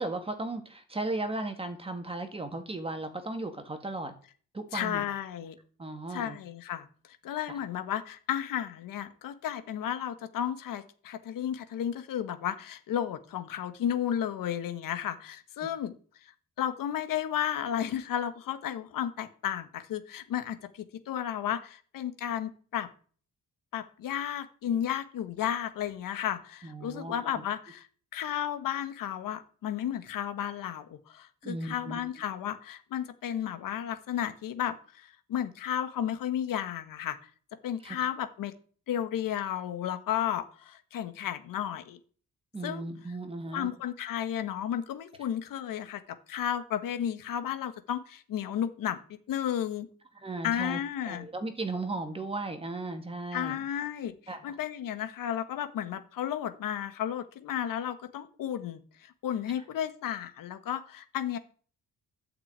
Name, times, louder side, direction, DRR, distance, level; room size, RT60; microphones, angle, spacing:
voice 1, 0.0-4.1 4.5-5.0 5.8-6.4 7.5-7.6 26.6-27.4 31.4-32.1 37.8-38.0 42.5-43.7 50.2-53.6 54.3-54.6, right 2 dB, 15° right, 7 dB, 1.9 m, -36 dB
voice 2, 4.7-5.6 6.1-6.9 7.2-15.9 16.2-22.9 23.7-27.9 28.1-37.2 37.6-38.5 38.9-42.0 42.6-42.8 43.5-46.0 46.3-49.0 49.3-49.9 50.4-51.3 53.3-61.4, left 10 dB, 85° left, 9 dB, 1.5 m, -33 dB
12.5 x 5.9 x 8.9 m, 0.44 s
cardioid pair, 160°, 32 cm